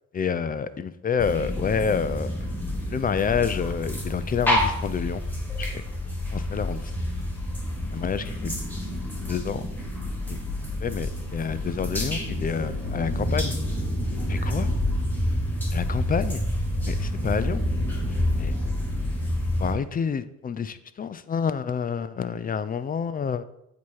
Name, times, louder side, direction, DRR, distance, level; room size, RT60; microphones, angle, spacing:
voice 1, 0.1-2.3 2.9-5.2 5.6-5.8 6.3-6.9 7.9-8.6 9.3-9.7 10.3-10.4 10.8-13.6 14.3-14.7 15.7-16.4 16.9-17.6 18.4-18.5 19.6-23.4, left 6 dB, 30° left, 14 dB, 0.4 m, -28 dB
sound 1, 1.2-19.7, left 1 dB, 5° left, 1.8 m, -28 dB
8.1 x 2.8 x 4.6 m, 0.81 s
cardioid pair, 90°, 30 cm